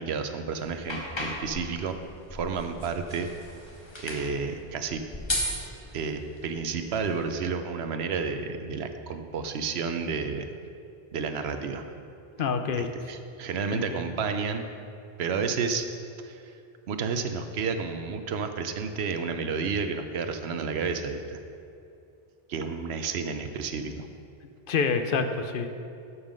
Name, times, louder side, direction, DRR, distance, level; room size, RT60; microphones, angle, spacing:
voice 1, 0.0-2.0 2.3-3.3 4.0-5.0 5.9-10.5 11.1-11.8 12.8-14.7 15.2-15.9 16.2-16.5 16.9-21.4 22.5-24.1, right 5 dB, 85° right, 7 dB, 1.0 m, -31 dB
sound 1, 0.6-7.4, left 1 dB, 25° left, 1.3 m, -37 dB
voice 2, 12.4-12.9 13.7-14.1 24.7-25.7, left 5 dB, 60° left, 8 dB, 0.8 m, -27 dB
12.5 x 5.6 x 5.1 m, 2.6 s
omnidirectional pair, 1.0 m